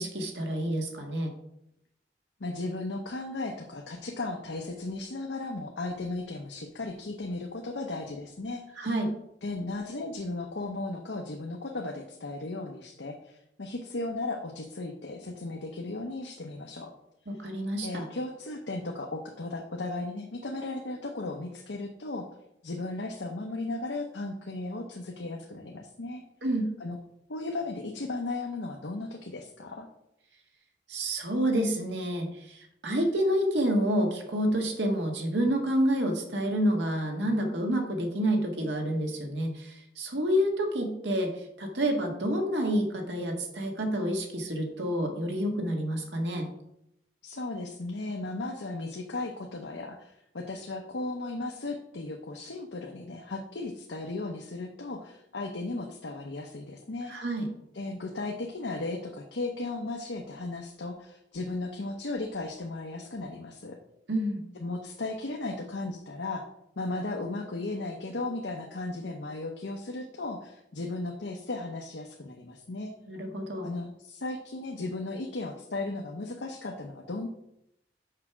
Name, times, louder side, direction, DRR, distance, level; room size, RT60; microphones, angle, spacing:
voice 1, 0.0-1.3 8.8-9.1 17.3-18.1 26.4-26.7 30.9-41.3 41.6-46.5 57.1-57.5 64.1-64.4 73.1-73.7, equal, 85° right, 2 dB, 1.6 m, -28 dB
voice 2, 2.4-8.9 9.4-16.9 17.8-22.3 22.6-26.2 26.8-27.0 27.3-29.9 47.2-57.1 57.7-63.8 64.6-66.4 66.8-72.9 73.6-77.3, left 2 dB, 85° left, 2 dB, 0.8 m, -36 dB
6.6 x 5.0 x 5.9 m, 0.79 s
head